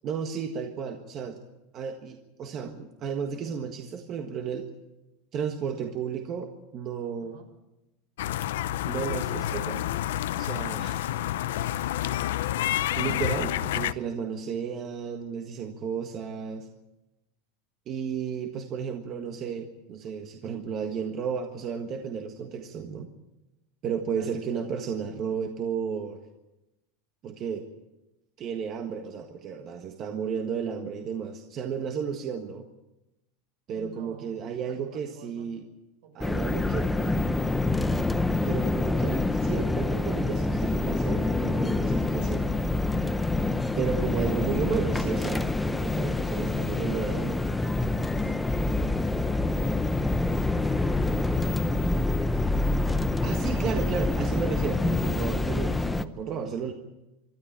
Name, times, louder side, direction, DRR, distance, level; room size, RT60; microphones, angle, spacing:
voice 1, 0.0-1.4 1.7-4.7 5.3-7.4 8.8-9.9 10.4-11.0 12.9-16.7 17.9-23.1 23.8-26.2 27.2-27.7 28.4-32.6 33.7-35.7 36.1-36.8 38.4-42.5 43.8-47.4 53.2-56.7, right 7 dB, 35° right, 4 dB, 1.6 m, -33 dB
sound 1, 8.2-13.9, left 13 dB, 85° left, 0.7 m, -29 dB
voice 2, 33.7-35.5 36.0-37.3 48.1-54.1, right 6 dB, 75° right, 5 dB, 6.5 m, -50 dB
sound 2, 36.2-56.0, left 2 dB, 5° left, 0.7 m, -26 dB
25.0 x 13.0 x 8.8 m, 0.98 s
supercardioid pair, 160°, 0 cm